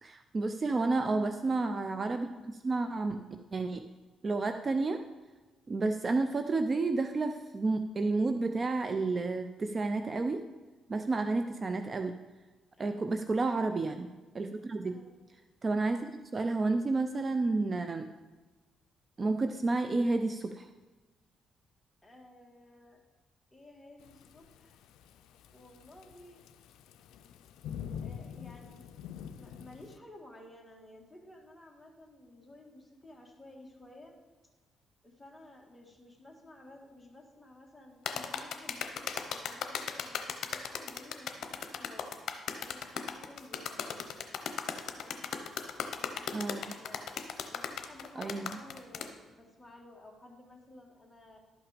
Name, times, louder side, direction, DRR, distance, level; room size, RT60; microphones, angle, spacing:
voice 1, 0.0-3.2 3.5-3.8 4.2-5.0 5.7-10.4 10.9-12.1 12.8-14.1 14.3-15.0 15.6-18.0 19.2-20.7 46.3-46.7 48.2-48.6, right 3 dB, 35° right, 7 dB, 0.5 m, -31 dB
voice 2, 11.2-11.6 12.8-13.1 14.8-15.1 22.0-23.0 23.5-24.8 25.5-26.4 28.0-28.9 29.3-34.2 35.0-42.1 42.5-44.2 45.0-45.4 46.0-51.4, left 1 dB, 10° left, 0 dB, 1.9 m, -54 dB
Thunderstorm / Rain, 24.0-30.0, left 8 dB, 90° left, 0.4 m, -45 dB
sound 1, 38.1-49.1, left 7 dB, 70° left, 0.8 m, -37 dB
11.5 x 5.9 x 5.1 m, 1.2 s
cardioid pair, 90°, 0 cm